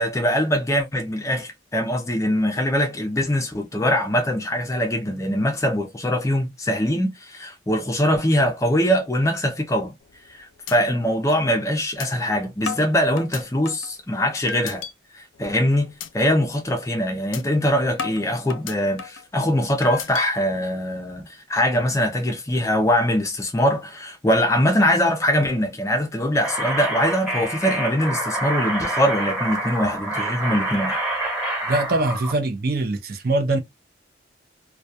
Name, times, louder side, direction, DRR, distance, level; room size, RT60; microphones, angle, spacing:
voice 1, 0.0-9.9 10.3-14.9 15.1-31.0, equal, 15° left, 0.4 m, -22 dB
sound 1, 10.0-10.3 10.7-10.8 11.2-11.3 12.0-12.1 12.7-13.9 14.5-14.9 15.3-15.6 16.0-16.1 16.5-16.7 17.3-17.4 18.0-19.3 19.8-20.2, left 6 dB, 80° left, 0.4 m, -33 dB
sound 2, 26.4-32.3, right 1 dB, 5° right, 1.0 m, -27 dB
voice 2, 31.7-33.6, right 2 dB, 50° right, 0.5 m, -23 dB
2.2 x 2.2 x 2.6 m
head